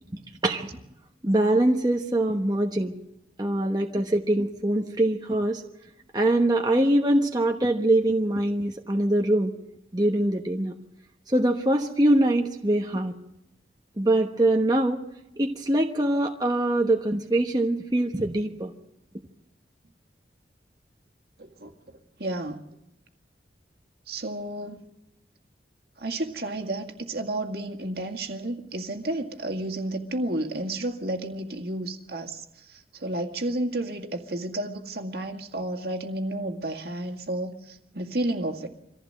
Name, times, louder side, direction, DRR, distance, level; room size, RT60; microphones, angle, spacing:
voice 1, 0.1-0.7 1.2-2.9 3.4-5.6 6.1-9.5 9.9-10.7 11.3-13.2 14.0-15.0 15.4-18.7, right 1 dB, 20° right, 2 dB, 1.1 m, -23 dB
voice 2, 21.4-22.6 24.1-24.9 26.0-38.7, right 1 dB, 60° right, 4 dB, 2.0 m, -32 dB
24.0 x 15.5 x 7.8 m, 0.86 s
head